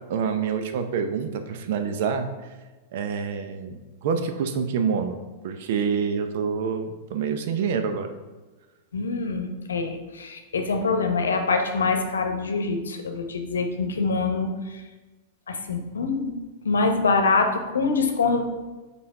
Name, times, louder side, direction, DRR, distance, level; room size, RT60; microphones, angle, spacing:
voice 1, 0.1-2.3 2.9-5.2 5.4-8.1, right 6 dB, 65° right, 7 dB, 0.7 m, -27 dB
voice 2, 8.9-14.8 15.5-16.3 16.6-18.4, left 4 dB, 85° left, 5 dB, 0.8 m, -25 dB
5.6 x 4.2 x 4.8 m, 1.2 s
hypercardioid pair, 105°, 0 cm